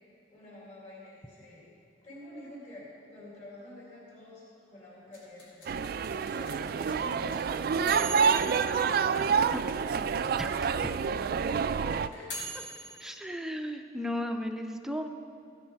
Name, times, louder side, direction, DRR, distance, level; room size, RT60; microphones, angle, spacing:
voice 1, 0.3-1.7 2.0-5.7 6.0-7.5 7.8-9.0 11.2-11.3 12.1-12.6, left 2 dB, 40° left, -6 dB, 3.6 m, -48 dB
sound 1, 5.1-10.3 10.5-10.6 10.8-13.1, right 2 dB, 80° left, 3.6 m, -41 dB
sound 2, 5.7-12.1, right 6 dB, 55° right, 0.3 m, -28 dB
voice 2, 10.4-10.9 13.0-15.1, left 1 dB, 5° right, 5 dB, 0.5 m, -35 dB
15.0 x 9.6 x 4.7 m, 2.5 s
head